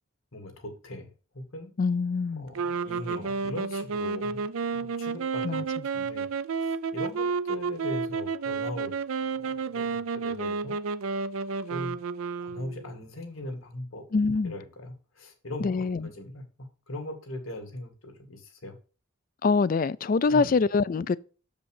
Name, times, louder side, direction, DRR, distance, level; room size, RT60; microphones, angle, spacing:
voice 1, 0.3-1.1 1.3-1.8 2.3-4.5 4.7-5.7 5.9-6.3 6.6-9.0 9.3-10.8 11.7-12.0 12.4-14.0 14.4-18.8 20.3-20.6, left 1 dB, 75° left, 2.2 m, -39 dB
voice 2, 1.8-2.5 5.4-5.6 14.1-14.5 15.6-16.1 19.4-21.2, left 4 dB, 40° left, 0.3 m, -24 dB
sound 1, 2.5-13.0, right 5 dB, 85° right, 0.5 m, -31 dB
7.1 x 5.2 x 6.5 m
head